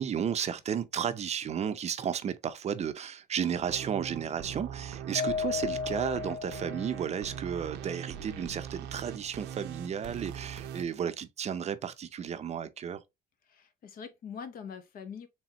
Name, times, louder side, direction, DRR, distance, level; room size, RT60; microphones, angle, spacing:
voice 1, 0.0-13.0, right 8 dB, 40° right, 0.5 m, -33 dB
sound 1, 3.5-10.8, right 8 dB, 90° right, 0.7 m, -41 dB
Mallet percussion, 5.2-7.4, left 7 dB, 85° left, 0.4 m, -35 dB
voice 2, 13.5-15.3, left 6 dB, 60° left, 0.9 m, -43 dB
4.2 x 3.5 x 2.9 m
cardioid pair, 110°, 17 cm